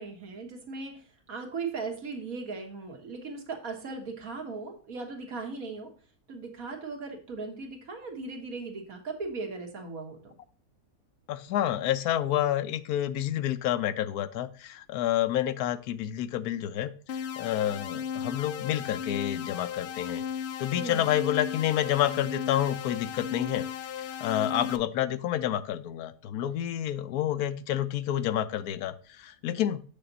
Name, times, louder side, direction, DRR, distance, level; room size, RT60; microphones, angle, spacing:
voice 1, 0.0-5.9 6.3-10.3 20.8-21.1, right 4 dB, 65° right, 2 dB, 2.0 m, -38 dB
voice 2, 11.3-20.2 20.6-23.7 24.0-29.8, left 11 dB, 80° left, 13 dB, 1.1 m, -29 dB
sound 1, 17.1-24.8, left 8 dB, 60° left, 0.7 m, -35 dB
7.1 x 6.7 x 4.0 m, 0.41 s
omnidirectional pair, 1.6 m